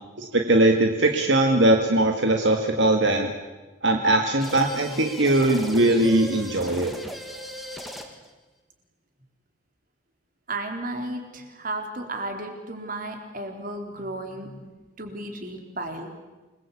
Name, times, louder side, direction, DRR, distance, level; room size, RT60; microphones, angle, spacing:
voice 1, 0.2-3.3 3.8-6.9, right 1 dB, 65° right, 3 dB, 2.1 m, -20 dB
sound 1, 4.4-8.3, equal, ahead, 2.5 m, -38 dB
voice 2, 10.5-14.6 15.0-16.1, right 2 dB, 45° right, 4 dB, 4.2 m, -34 dB
28.5 x 21.0 x 8.5 m, 1.2 s
head